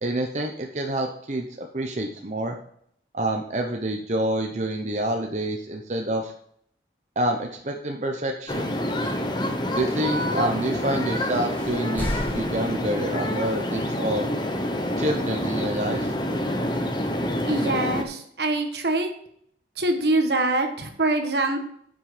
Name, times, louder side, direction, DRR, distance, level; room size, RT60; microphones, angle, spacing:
voice 1, 0.0-2.6 3.1-6.3 7.2-8.7 9.8-14.3 15.0-16.1, right 1 dB, 40° right, 2 dB, 0.8 m, -27 dB
sound 1, 8.5-18.0, left 1 dB, 25° left, 1.0 m, -27 dB
sound 2, 11.5-13.6, equal, 10° left, 1.8 m, -34 dB
voice 2, 17.4-19.1 19.8-21.6, right 2 dB, 65° right, 5 dB, 1.3 m, -24 dB
9.3 x 6.1 x 5.0 m, 0.66 s
head